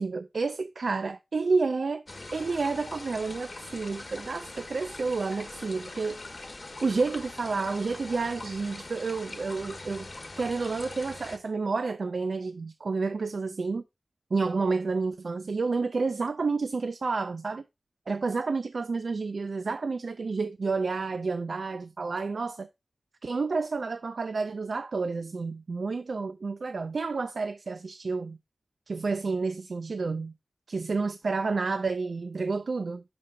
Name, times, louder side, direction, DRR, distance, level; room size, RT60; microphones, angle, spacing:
voice 1, 0.0-2.0 2.3-6.2 6.8-10.1 10.4-13.8 14.3-17.6 18.1-22.7 23.2-28.4 28.9-30.3 30.7-33.0, right 4 dB, 80° right, 0.3 m, -30 dB
sound 1, 2.1-11.4, left 2 dB, 45° left, 1.1 m, -42 dB
5.5 x 5.2 x 3.7 m
wide cardioid pair, 90°, 0 cm